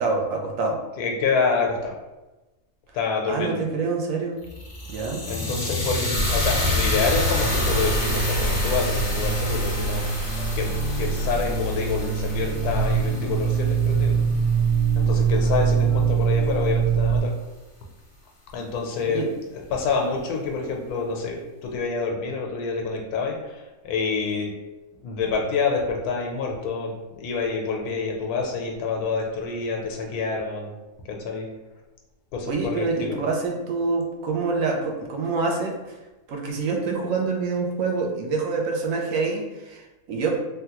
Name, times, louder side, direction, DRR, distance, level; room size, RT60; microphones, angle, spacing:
voice 1, 0.0-0.8 3.3-4.4 4.9-5.2 19.1-19.3 32.5-36.0 36.3-40.4, right 4 dB, 70° right, 1 dB, 0.9 m, -26 dB
voice 2, 1.0-2.0 2.9-3.6 5.3-10.0 10.5-10.7 11.0-14.1 14.9-17.3 18.5-19.2 19.5-24.5 25.0-30.7 31.1-31.5 32.3-33.2, left 4 dB, 85° left, 0 dB, 1.1 m, -27 dB
sound 1, 4.4-14.6, left 1 dB, 50° left, 0.6 m, -28 dB
sound 2, 6.6-17.2, right 5 dB, 40° right, 1.5 m, -24 dB
3.4 x 2.2 x 2.8 m, 1.1 s
omnidirectional pair, 1.6 m